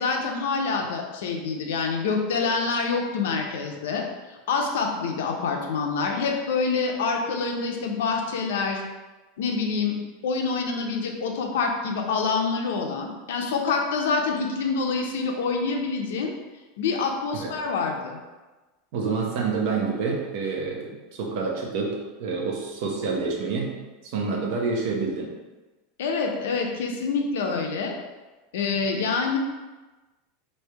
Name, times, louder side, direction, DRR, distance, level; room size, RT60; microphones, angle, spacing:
voice 1, 0.0-4.0 4.5-8.8 9.4-10.0 10.2-16.3 16.8-18.2 26.0-28.0 28.5-29.4, left 4 dB, 90° left, 2 dB, 0.7 m, -26 dB
voice 2, 18.9-23.7 24.0-25.3, right 4 dB, 50° right, -1 dB, 0.9 m, -28 dB
3.2 x 2.7 x 4.5 m, 1.2 s
supercardioid pair, 170°, 0 cm